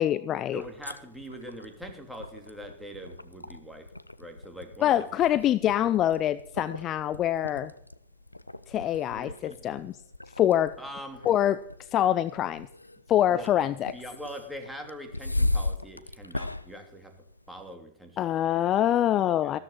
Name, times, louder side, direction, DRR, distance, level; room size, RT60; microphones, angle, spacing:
voice 1, 0.0-0.6 4.8-7.7 8.7-10.0 10.4-10.7 11.3-11.6 11.9-12.7 13.1-13.9 18.2-19.6, left 11 dB, 30° left, 16 dB, 0.5 m, -25 dB
sound 1, 0.5-17.7, left 2 dB, 85° left, 0.6 m, -37 dB
voice 2, 0.5-3.9 4.2-5.1 9.1-9.6 10.8-11.3 13.3-17.1 17.5-18.5 19.2-19.6, equal, 5° right, 4 dB, 3.0 m, -43 dB
15.0 x 13.5 x 4.3 m, 0.68 s
figure-of-eight pair, 90°, 0 cm